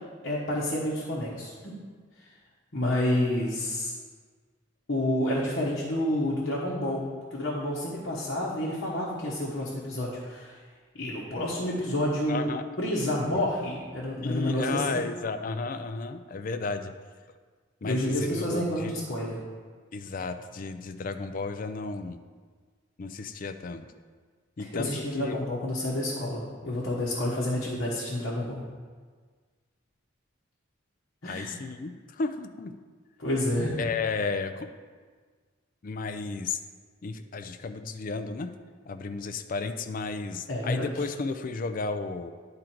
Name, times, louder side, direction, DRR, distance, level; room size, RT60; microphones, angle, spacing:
voice 1, 0.2-1.7 2.7-3.9 4.9-7.0 7.3-10.6 10.9-12.4 12.8-15.0 17.8-19.4 24.6-28.6 31.2-31.6 33.2-33.8 40.5-40.9, left 1 dB, 55° left, -7 dB, 1.2 m, -29 dB
voice 2, 12.3-12.6 13.3-13.4 14.2-16.9 17.8-18.9 19.9-22.2 23.0-23.9 24.6-25.4 31.2-32.7 33.8-34.7 35.8-36.6 37.0-38.5 38.9-42.3, left 4 dB, 40° left, 9 dB, 0.4 m, -33 dB
10.5 x 3.8 x 4.4 m, 1.6 s
head